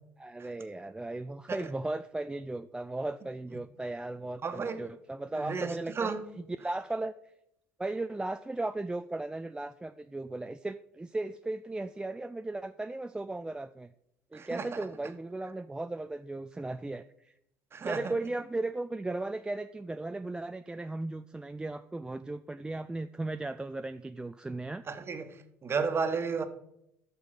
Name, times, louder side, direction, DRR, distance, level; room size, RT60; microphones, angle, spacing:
voice 1, 0.2-7.1 7.8-13.9 14.3-17.3 17.8-24.8, right 2 dB, 10° right, 0.3 m, -36 dB
voice 2, 4.4-4.8 5.4-6.2 14.3-14.8 17.7-18.1 24.9-25.3 25.6-26.4, right 5 dB, 35° right, 1.3 m, -32 dB
7.8 x 6.8 x 5.6 m
hypercardioid pair, 60°, 7 cm